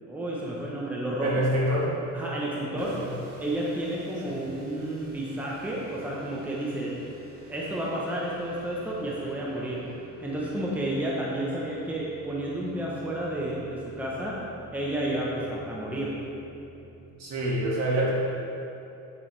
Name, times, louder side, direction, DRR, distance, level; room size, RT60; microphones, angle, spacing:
voice 1, 0.1-1.3 2.1-2.9 3.4-6.9 7.5-9.8 10.2-14.4 14.7-16.1, right 1 dB, 5° right, -5 dB, 0.9 m, -31 dB
voice 2, 1.2-1.9 2.7-3.3 4.2-4.4 17.2-18.1, right 1 dB, 50° right, -4 dB, 1.9 m, -27 dB
sound 1, 2.8-17.1, right 3 dB, 85° right, 1.4 m, -50 dB
9.7 x 7.5 x 3.3 m, 2.8 s
cardioid pair, 145°, 33 cm